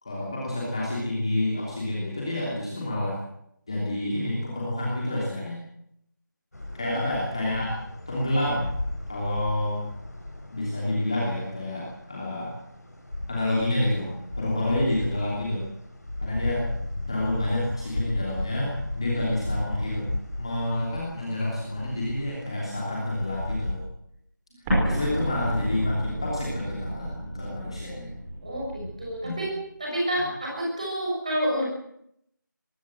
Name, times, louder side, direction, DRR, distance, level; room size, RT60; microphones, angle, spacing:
voice 1, 0.0-3.2 3.7-5.6 6.7-7.7 8.1-8.7 9.1-9.8 10.5-12.5 13.3-14.1 14.4-15.6 16.2-16.6 17.1-20.1 20.4-23.8 24.8-28.1 29.2-29.3 30.1-30.2, left 1 dB, 15° left, -5 dB, 3.2 m, -28 dB
sound 1, 6.5-23.7, left 1 dB, 50° left, 5.4 m, -36 dB
Explosion, 24.6-29.4, equal, 5° right, 4.6 m, -30 dB
voice 2, 28.4-29.5 29.8-31.6, equal, 20° right, -3 dB, 6.3 m, -29 dB
22.5 x 16.5 x 7.8 m, 0.75 s
figure-of-eight pair, 180°, 11 cm